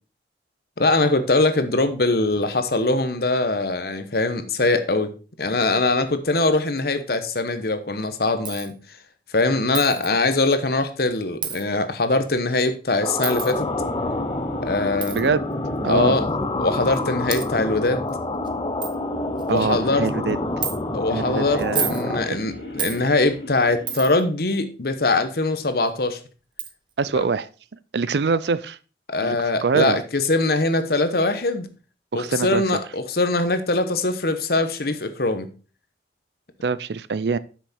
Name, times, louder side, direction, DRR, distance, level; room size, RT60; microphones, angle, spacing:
voice 1, 0.8-5.1 5.4-8.7 9.3-13.7 14.6-15.3 15.9-16.3 16.6-18.1 19.5-20.1 20.9-26.2 27.2-27.3 29.1-31.7 32.1-35.5, left 2 dB, 60° left, 10 dB, 1.0 m, -22 dB
Coin (dropping), 8.4-8.7 9.7-10.1 11.4-11.6 13.2-13.5 15.0-15.2 16.2-16.3 16.9-17.0 17.3-17.5 18.1-18.2 18.5-18.6 18.8-18.9 19.4-19.7 20.6-20.7 21.6-22.0 22.8-23.0 23.9-24.2 25.9-26.0 26.6-26.7, right 8 dB, 25° right, 0.8 m, -29 dB
sound 1, 13.0-22.3, left 2 dB, 25° left, 0.5 m, -28 dB
sound 2, 13.2-24.3, left 1 dB, 80° left, 2.3 m, -34 dB
voice 2, 15.8-16.2 19.5-20.4 21.1-22.4 27.0-27.5 27.9-28.8 29.2-29.4 29.6-30.0 32.1-32.6 36.6-37.4, right 4 dB, 70° right, 17 dB, 0.5 m, -24 dB
8.2 x 6.2 x 4.2 m, 0.35 s
head